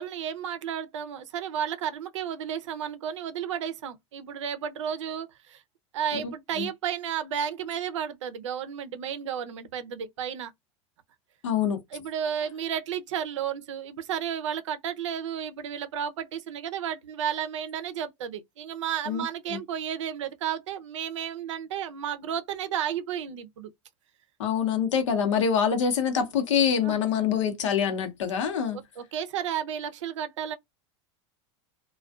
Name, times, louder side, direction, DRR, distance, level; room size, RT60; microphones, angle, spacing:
voice 1, 0.0-5.6 5.9-10.5 11.9-23.7 26.8-27.0 28.7-30.6, right 9 dB, 85° right, 0.5 m, -32 dB
voice 2, 11.4-11.8 19.1-19.2 19.5-19.6 24.4-28.8, left 7 dB, 85° left, 0.8 m, -25 dB
2.5 x 2.2 x 2.3 m
hypercardioid pair, 100°, 15 cm